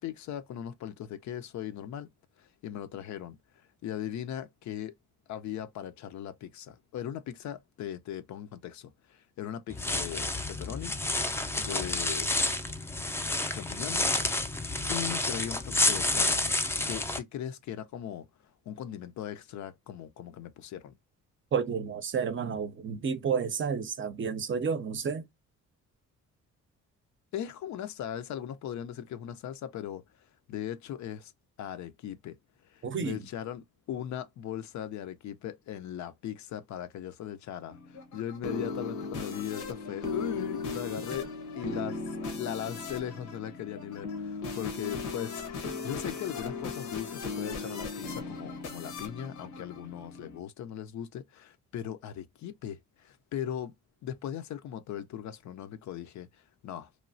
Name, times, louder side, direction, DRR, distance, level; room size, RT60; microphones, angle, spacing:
voice 1, 0.0-2.1 2.4-3.4 3.8-5.0 5.3-11.0 11.6-12.3 13.5-14.2 14.9-16.6 16.9-18.3 18.7-20.9 27.3-31.3 31.6-53.7 54.0-56.9, left 10 dB, 70° left, 0.5 m, -39 dB
sound 1, 9.7-17.2, left 2 dB, 10° left, 0.4 m, -29 dB
voice 2, 21.5-25.2 32.8-33.2, right 6 dB, 40° right, 0.6 m, -31 dB
sound 2, 37.7-50.4, left 4 dB, 90° left, 1.1 m, -37 dB
3.0 x 2.3 x 2.6 m
cardioid pair, 90°, 30 cm